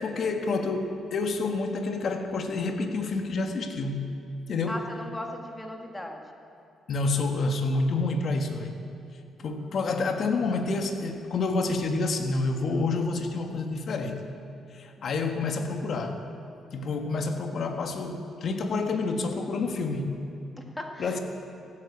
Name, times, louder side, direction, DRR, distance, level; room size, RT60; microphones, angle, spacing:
voice 1, 0.0-4.1 4.5-4.8 6.9-8.7 9.4-14.2 14.7-16.2 16.7-20.2 21.0-21.2, left 3 dB, 55° left, 5 dB, 1.5 m, -28 dB
voice 2, 4.7-6.3 15.0-15.1 20.6-21.2, left 1 dB, 10° left, 2 dB, 1.8 m, -38 dB
16.0 x 8.7 x 8.4 m, 2.6 s
cardioid pair, 90°, 0 cm